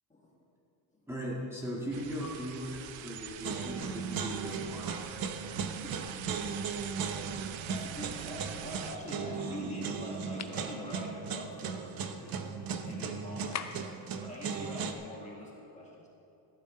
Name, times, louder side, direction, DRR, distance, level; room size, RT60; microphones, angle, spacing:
voice 1, 1.1-4.9, equal, 5° right, -6 dB, 1.8 m, -38 dB
sound 1, 1.9-9.0, right 10 dB, 85° right, 0.7 m, -44 dB
sound 2, 3.4-14.9, right 5 dB, 50° right, 0.8 m, -37 dB
voice 2, 7.7-12.4 12.8-13.8 14.2-16.1, equal, 15° left, -4 dB, 1.9 m, -44 dB
sound 3, 10.4-10.6 13.5-14.0, left 8 dB, 40° left, 0.6 m, -39 dB
14.5 x 12.5 x 3.8 m, 2.8 s
cardioid pair, 170°, 44 cm